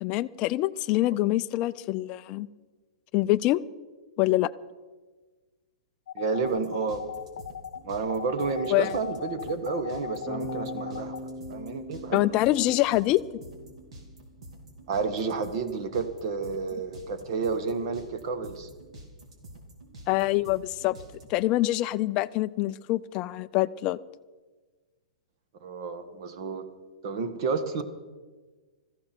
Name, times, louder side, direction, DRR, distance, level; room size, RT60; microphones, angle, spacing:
voice 1, 0.0-2.5 3.1-3.6 4.2-4.5 8.7-8.9 12.1-13.2 20.1-21.0 21.3-24.0, left 17 dB, 25° left, 13 dB, 0.4 m, -25 dB
sound 1, 6.1-11.2, left 9 dB, 65° left, 0.8 m, -38 dB
voice 2, 6.1-7.0 7.8-11.2 11.5-12.3 14.9-18.7 25.6-26.7 27.0-27.8, right 4 dB, 40° right, 8 dB, 1.5 m, -30 dB
sound 2, 6.5-21.2, right 1 dB, 65° right, 3.5 m, -47 dB
Bass guitar, 10.3-14.2, left 1 dB, ahead, 1.2 m, -40 dB
20.0 x 14.5 x 4.5 m, 1.3 s
hypercardioid pair, 170°, 4 cm